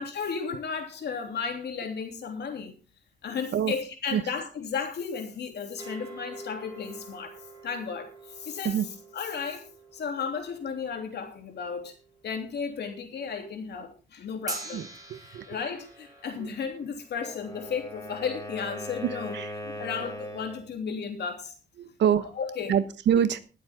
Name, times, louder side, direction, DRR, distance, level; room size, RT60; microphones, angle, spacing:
voice 1, 0.0-2.7 3.2-7.4 7.6-8.8 9.1-9.7 9.9-11.9 12.2-14.9 15.2-19.4 19.6-21.5 22.2-22.7, left 6 dB, 65° left, 3.2 m, -34 dB
sound 1, 5.8-12.2 14.5-18.9, right 3 dB, 20° right, 4.2 m, -46 dB
voice 2, 15.1-15.4 19.3-19.5 21.8-22.3 22.7-23.4, right 9 dB, 75° right, 1.1 m, -25 dB
Wind instrument woodwind instrument, 17.1-20.7, equal, 20° left, 4.9 m, -39 dB
20.5 x 7.9 x 3.7 m
cardioid pair, 120°, 18 cm